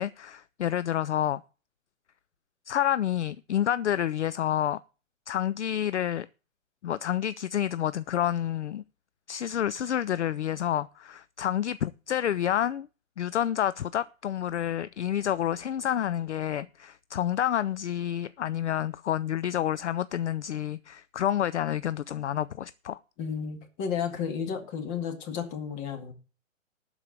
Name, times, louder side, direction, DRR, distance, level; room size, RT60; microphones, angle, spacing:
voice 1, 0.0-1.4 2.7-4.8 5.3-6.3 6.8-8.8 9.3-12.9 13.2-23.0, left 10 dB, 60° left, 0.5 m, -29 dB
voice 2, 23.2-26.1, left 7 dB, 25° left, 2.1 m, -32 dB
12.0 x 4.9 x 8.7 m
figure-of-eight pair, 130°, 40 cm